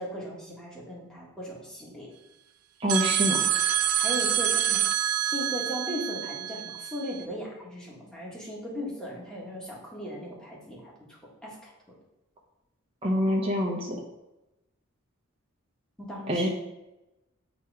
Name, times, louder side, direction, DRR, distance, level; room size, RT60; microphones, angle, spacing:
voice 1, 0.0-2.1 4.0-11.7 16.0-16.5, equal, 5° left, -5 dB, 1.5 m, -38 dB
voice 2, 2.8-3.5 13.0-14.0 16.3-16.5, equal, 25° right, -1 dB, 0.8 m, -26 dB
sound 1, 2.9-7.2, right 10 dB, 80° right, 0.4 m, -27 dB
7.5 x 3.1 x 4.8 m, 0.97 s
head